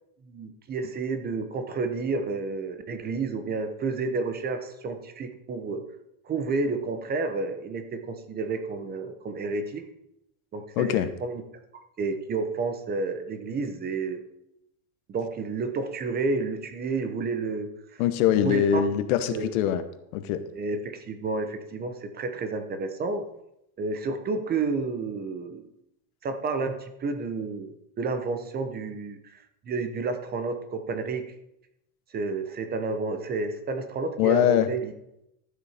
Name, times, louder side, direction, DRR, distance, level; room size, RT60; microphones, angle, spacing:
voice 1, 0.3-5.8 6.3-9.8 10.5-11.4 12.0-14.2 15.1-18.0 18.3-18.8 19.3-19.5 20.5-23.2 23.8-25.6 26.2-29.4 29.7-31.3 32.1-34.9, right 4 dB, 20° right, 8 dB, 0.9 m, -30 dB
voice 2, 10.8-11.1 18.0-19.8 20.1-20.4 34.2-34.7, left 10 dB, 70° left, 10 dB, 1.1 m, -23 dB
12.5 x 7.2 x 5.0 m, 0.83 s
supercardioid pair, 155°, 45 cm